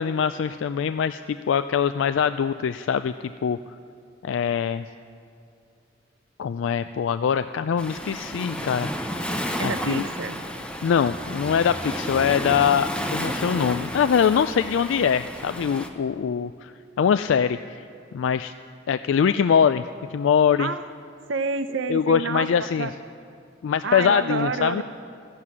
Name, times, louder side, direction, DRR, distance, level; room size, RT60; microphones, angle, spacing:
voice 1, 0.0-3.1 3.4-3.6 4.2-4.9 6.4-8.9 9.6-10.1 10.8-17.8 18.1-18.5 18.9-20.7 21.9-22.9 23.6-24.8, left 7 dB, 70° left, 12 dB, 0.3 m, -23 dB
Waves surf, 7.8-15.9, equal, 5° left, 0.9 m, -32 dB
voice 2, 9.6-10.4 20.6-20.8 21.3-22.9 23.8-24.8, right 4 dB, 70° right, 11 dB, 0.7 m, -29 dB
14.5 x 7.6 x 9.7 m, 2.4 s
head